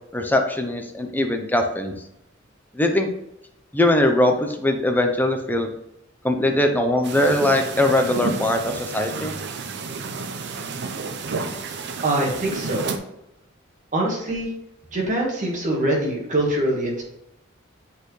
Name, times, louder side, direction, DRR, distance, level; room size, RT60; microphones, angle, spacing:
voice 1, 0.1-1.9 2.7-3.1 3.7-5.7 6.2-9.4, left 1 dB, 10° left, 4 dB, 0.7 m, -21 dB
sound 1, 7.0-13.0, right 4 dB, 60° right, 0.7 m, -31 dB
voice 2, 12.0-12.9 13.9-14.5 14.9-17.0, right 1 dB, 40° right, -1 dB, 1.7 m, -23 dB
7.9 x 4.2 x 3.2 m, 0.82 s
head